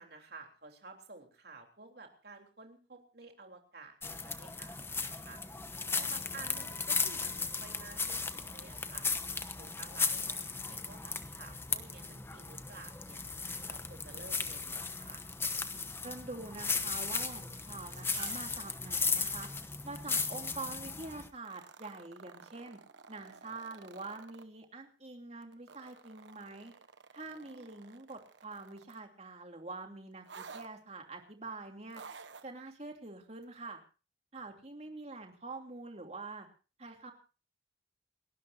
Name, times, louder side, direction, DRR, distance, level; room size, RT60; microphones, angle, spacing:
voice 1, 0.0-5.4 6.0-9.1 9.6-13.2 13.7-15.3 27.2-27.7 34.8-35.0, right 3 dB, 60° right, 3 dB, 3.6 m, -53 dB
sound 1, 4.0-21.3, left 4 dB, 15° left, 1.0 m, -36 dB
voice 2, 16.0-19.5 19.8-22.8 23.1-26.7 27.1-32.0 32.4-33.8 34.3-36.5 36.8-37.1, right 3 dB, 35° right, 3 dB, 2.9 m, -45 dB
sound 2, 17.9-18.6 18.9-19.1 21.4-24.5 25.4-29.1 30.3-30.7 31.9-32.5 33.4-33.5, right 6 dB, 80° right, 1.2 m, -51 dB
29.0 x 13.0 x 2.7 m, 0.35 s
head